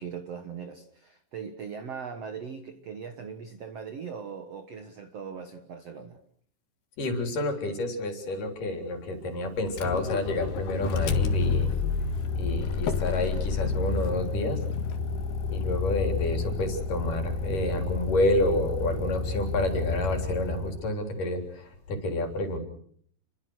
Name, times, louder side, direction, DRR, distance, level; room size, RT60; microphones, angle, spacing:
voice 1, 0.0-6.2, right 6 dB, 60° right, 8 dB, 1.7 m, -40 dB
voice 2, 7.0-11.7 12.3-14.6 15.5-22.6, left 1 dB, 50° left, 5 dB, 5.1 m, -29 dB
Motor vehicle (road), 9.7-20.9, left 5 dB, 70° left, 3.6 m, -30 dB
30.0 x 23.0 x 6.4 m, 0.63 s
omnidirectional pair, 5.0 m